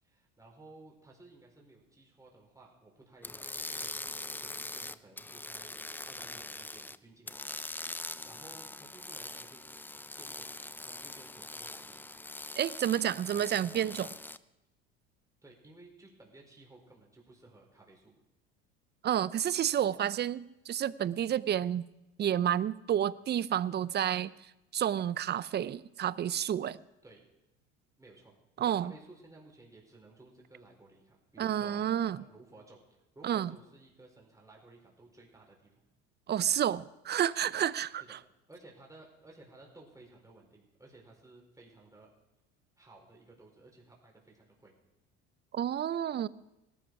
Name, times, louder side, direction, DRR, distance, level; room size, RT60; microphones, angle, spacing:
voice 1, 0.0-7.5 8.2-9.6 10.2-12.2 13.2-14.1 15.4-18.2 23.0-23.1 27.0-27.2 28.0-35.8 38.1-38.2 38.5-42.1 42.8-44.7, right 2 dB, 10° right, -1 dB, 4.9 m, -56 dB
sound 1, 3.2-7.0 7.3-14.4, left 2 dB, 5° left, 0.6 m, -42 dB
voice 2, 12.6-14.1 19.0-21.8 22.2-24.3 24.7-26.8 28.6-28.9 31.4-32.2 33.2-33.5 36.3-38.2 45.5-46.3, right 10 dB, 35° right, 19 dB, 0.6 m, -30 dB
18.0 x 12.0 x 4.8 m, 0.93 s
hypercardioid pair, 75°, 30 cm